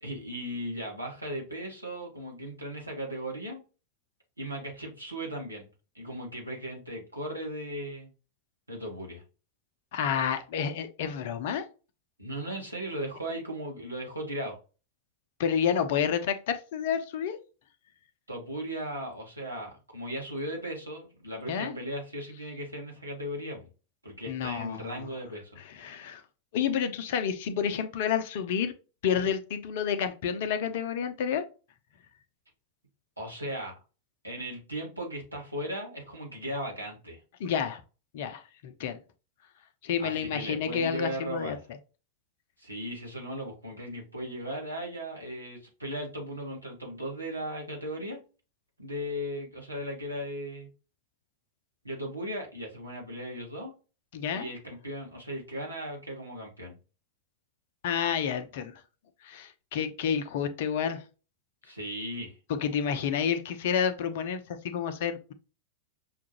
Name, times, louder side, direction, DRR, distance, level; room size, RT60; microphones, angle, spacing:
voice 1, 0.0-3.6 4.4-5.7 5.9-8.1 8.7-9.2 12.2-14.6 18.3-23.7 24.0-25.6 33.2-33.8 34.2-37.2 40.0-41.6 42.6-48.2 48.8-50.7 51.8-53.7 54.3-56.8 61.6-62.4, equal, 85° right, -1 dB, 1.3 m, -37 dB
voice 2, 9.9-11.6 15.4-17.4 21.5-21.7 24.3-25.1 25.7-26.2 26.5-28.7 29.0-31.4 37.4-37.8 38.1-39.0 39.8-41.6 54.1-54.5 57.8-58.7 59.2-61.0 62.5-65.3, left 8 dB, 55° left, 10 dB, 0.5 m, -29 dB
5.8 x 2.4 x 2.8 m, 0.33 s
figure-of-eight pair, 90°, 0 cm